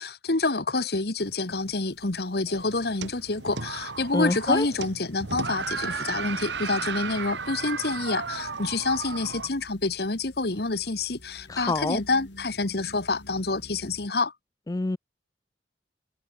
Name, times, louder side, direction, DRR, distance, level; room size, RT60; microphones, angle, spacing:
voice 1, 0.0-14.3, left 3 dB, 60° left, 1.5 m, -28 dB
sound 1, 1.2-14.1, left 1 dB, 85° left, 4.7 m, -52 dB
sound 2, 2.5-9.5, right 5 dB, 85° right, 2.0 m, -34 dB
voice 2, 4.1-4.7 11.5-12.0 14.7-15.0, left 2 dB, 20° left, 0.4 m, -26 dB
head